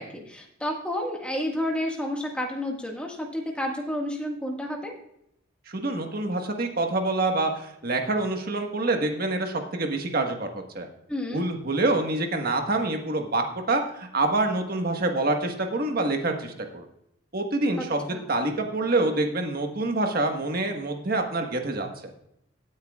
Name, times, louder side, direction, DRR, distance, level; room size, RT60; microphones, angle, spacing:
voice 1, 0.0-4.9 11.1-11.5 17.8-18.3, left 1 dB, 5° left, 0 dB, 1.7 m, -31 dB
voice 2, 5.7-10.9 11.3-16.8 17.3-21.9, right 2 dB, 50° right, 4 dB, 1.5 m, -26 dB
17.5 x 9.4 x 2.4 m, 0.76 s
head